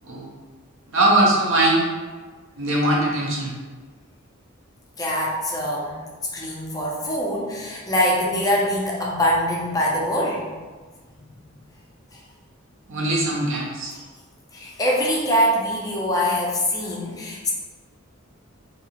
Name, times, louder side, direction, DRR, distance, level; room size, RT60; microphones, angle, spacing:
voice 1, 0.9-1.8 2.6-3.5 12.9-13.9, right 1 dB, 65° right, -2 dB, 0.6 m, -21 dB
voice 2, 5.0-6.0 6.3-10.4 12.1-12.2 14.5-17.5, equal, 15° left, -4 dB, 0.4 m, -23 dB
2.7 x 2.4 x 2.8 m, 1.4 s
head